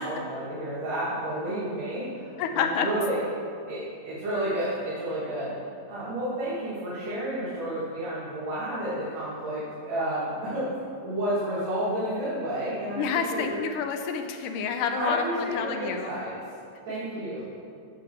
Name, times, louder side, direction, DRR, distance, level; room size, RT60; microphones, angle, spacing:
voice 1, 0.0-3.2 3.7-5.5 5.9-10.7 11.0-13.0 13.3-13.6 15.0-16.3 16.8-17.5, right 1 dB, 70° right, -11 dB, 3.3 m, -31 dB
voice 2, 2.4-2.9 13.0-16.1, left 6 dB, 80° left, 5 dB, 2.0 m, -28 dB
9.3 x 3.6 x 6.4 m, 2.4 s
omnidirectional pair, 3.8 m